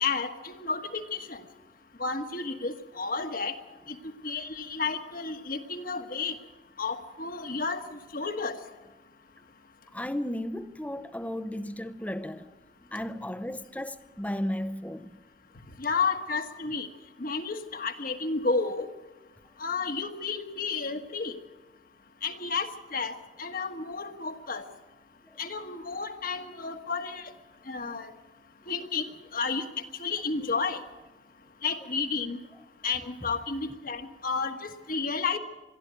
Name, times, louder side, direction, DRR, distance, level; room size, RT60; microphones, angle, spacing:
voice 1, 0.0-1.4 2.0-3.6 3.9-4.0 4.2-6.4 6.8-8.6 15.8-16.9 17.2-18.9 19.6-21.4 22.2-24.6 25.4-27.3 27.7-28.1 28.7-29.7 30.0-30.8 31.6-32.4 32.8-35.4, left 4 dB, 50° left, 1.4 m, -31 dB
voice 2, 9.9-12.5 12.8-15.2 25.3-25.4, left 1 dB, 10° left, 0.7 m, -34 dB
22.5 x 13.5 x 8.9 m
head